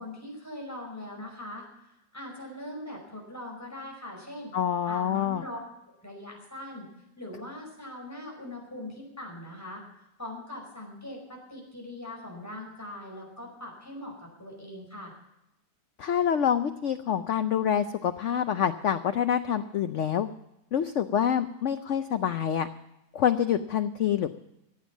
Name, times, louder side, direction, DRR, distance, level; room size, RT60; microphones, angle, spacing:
voice 1, 0.0-1.6 2.1-4.5 4.8-5.6 6.0-6.9 7.2-9.8 10.2-15.1, left 1 dB, 10° left, -1 dB, 5.0 m, -41 dB
voice 2, 4.5-5.4 16.0-20.3 20.7-22.7 23.1-24.3, left 9 dB, 90° left, 10 dB, 0.6 m, -26 dB
14.5 x 8.9 x 7.2 m, 0.87 s
omnidirectional pair, 2.0 m